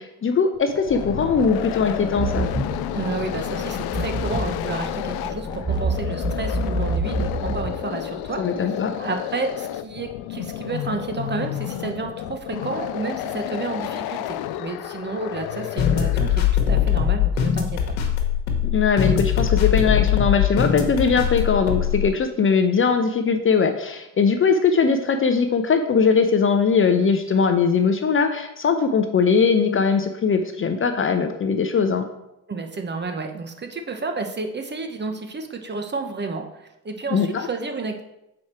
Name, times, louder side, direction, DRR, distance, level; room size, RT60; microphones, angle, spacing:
voice 1, 0.0-2.5 8.4-8.9 18.7-32.0 37.1-37.5, left 5 dB, 30° left, 7 dB, 0.7 m, -20 dB
sound 1, 0.6-16.7, left 12 dB, 65° left, 0.5 m, -31 dB
sound 2, 0.9-7.7, right 2 dB, 10° left, 1.1 m, -28 dB
voice 2, 2.9-8.7 9.0-17.8 32.5-38.0, right 4 dB, 25° right, 5 dB, 1.0 m, -31 dB
sound 3, 15.8-22.1, left 9 dB, 90° left, 1.2 m, -21 dB
6.3 x 4.7 x 4.3 m, 0.87 s
supercardioid pair, 80°, 40 cm